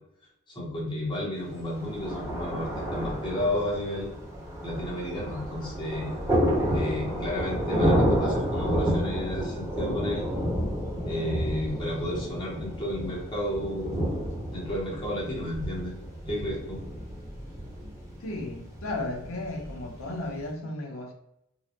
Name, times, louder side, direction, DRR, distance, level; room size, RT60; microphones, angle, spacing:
voice 1, 0.5-4.1 4.6-6.1 6.7-10.3 11.1-14.1 14.5-15.9 16.3-16.8, left 1 dB, 20° left, -5 dB, 0.9 m, -32 dB
Thunder, 1.5-20.4, equal, 15° right, 0.8 m, -30 dB
voice 2, 18.2-21.1, left 2 dB, 80° left, 1 dB, 0.7 m, -34 dB
3.8 x 2.1 x 2.9 m, 0.80 s
head